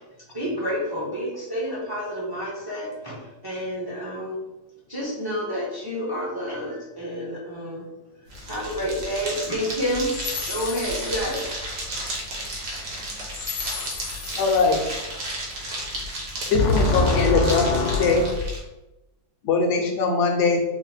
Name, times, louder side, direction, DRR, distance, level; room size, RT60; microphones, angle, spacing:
voice 1, 0.3-4.4 4.9-7.8 8.4-10.1 10.5-11.4, equal, 25° right, -6 dB, 0.5 m, -29 dB
sound 1, 8.3-18.6, equal, 65° right, 1.5 m, -33 dB
voice 2, 10.5-10.9 13.3-14.4 16.5-18.3, left 3 dB, 85° left, 3 dB, 1.3 m, -25 dB
voice 3, 14.4-14.8 16.5-17.6 17.9-18.2 19.4-20.6, left 4 dB, 70° left, 2 dB, 1.2 m, -21 dB
4.0 x 2.1 x 4.2 m, 0.99 s
omnidirectional pair, 1.9 m